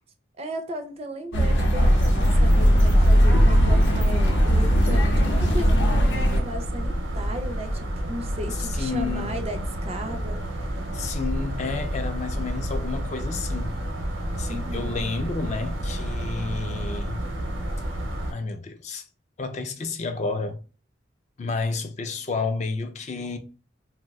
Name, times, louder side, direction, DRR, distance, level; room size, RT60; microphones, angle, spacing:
voice 1, 0.4-10.8 14.5-15.0, right 1 dB, 30° right, 0.4 m, -36 dB
sound 1, 1.3-6.4, equal, 75° left, 0.6 m, -18 dB
sound 2, 1.8-18.3, equal, 90° right, 0.7 m, -30 dB
voice 2, 8.6-9.4 10.9-13.7 14.4-17.2 18.3-19.0 19.4-20.6 21.4-23.4, left 4 dB, 35° left, 0.3 m, -31 dB
2.6 x 2.1 x 3.4 m
head